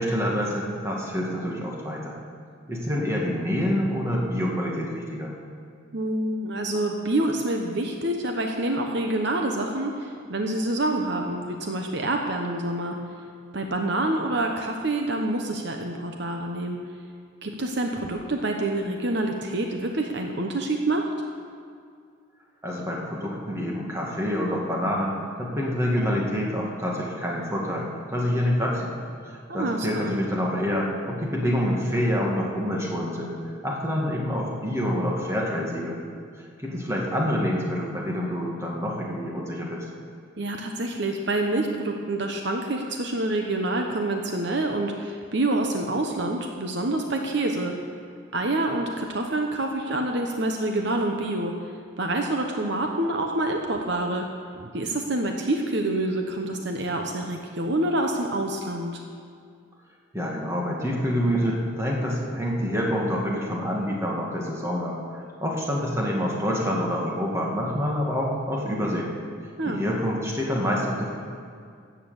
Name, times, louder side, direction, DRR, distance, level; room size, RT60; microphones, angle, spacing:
voice 1, 0.0-2.1 2.7-5.3 22.6-28.9 29.2-33.4 33.6-36.0 36.4-39.8 60.1-69.1 69.7-71.1, equal, 15° right, -2 dB, 2.0 m, -27 dB
voice 2, 5.9-13.0 13.5-16.8 17.4-21.1 29.5-30.1 40.4-47.7 48.3-51.5 52.0-54.2 54.6-59.0 69.6-69.8, right 2 dB, 60° right, 3 dB, 0.9 m, -27 dB
14.0 x 8.5 x 7.1 m, 2.2 s
head